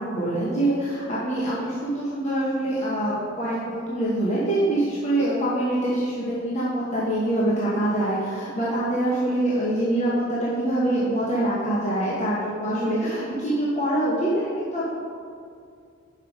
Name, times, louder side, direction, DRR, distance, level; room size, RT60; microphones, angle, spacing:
voice 1, 0.0-14.9, right 1 dB, 35° left, -8 dB, 1.0 m, -25 dB
5.4 x 4.9 x 5.2 m, 2.4 s
head